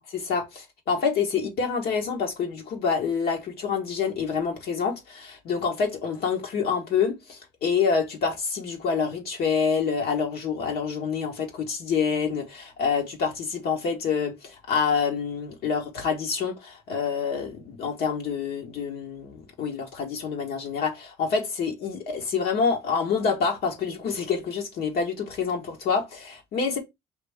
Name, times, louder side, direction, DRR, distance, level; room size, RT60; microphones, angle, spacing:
voice 1, 0.0-26.8, left 6 dB, 65° left, 1.2 m, -27 dB
4.9 x 2.7 x 3.3 m
cardioid pair, 110°, 17 cm